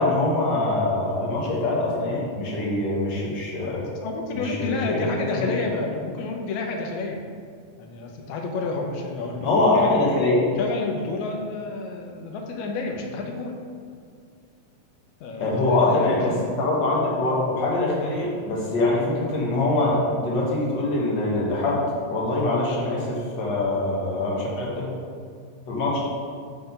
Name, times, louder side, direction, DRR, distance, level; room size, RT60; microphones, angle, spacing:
voice 1, 0.0-3.8 4.3-5.5 9.4-10.4 15.4-24.9 25.7-26.0, left 2 dB, 60° left, -4 dB, 1.2 m, -23 dB
voice 2, 3.6-7.2 7.8-9.7 10.4-13.5 15.2-16.2, left 3 dB, 80° left, 1 dB, 2.0 m, -30 dB
5.8 x 3.7 x 5.3 m, 2.2 s
omnidirectional pair, 3.3 m